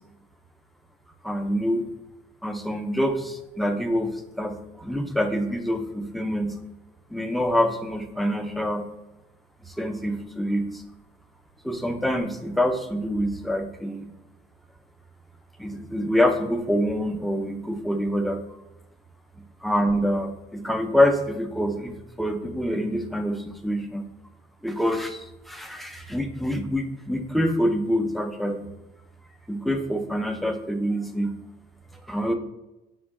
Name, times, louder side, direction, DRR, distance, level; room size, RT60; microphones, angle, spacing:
voice 1, 1.2-1.9 2.4-4.1 4.4-6.6 7.1-8.9 9.8-10.7 11.6-14.1 15.6-18.4 19.6-24.0 24.6-25.2 25.5-28.7 29.5-31.4 32.1-32.3, equal, ahead, 5 dB, 0.4 m, -26 dB
4.4 x 2.1 x 4.6 m, 0.98 s
cardioid pair, 110°, 17 cm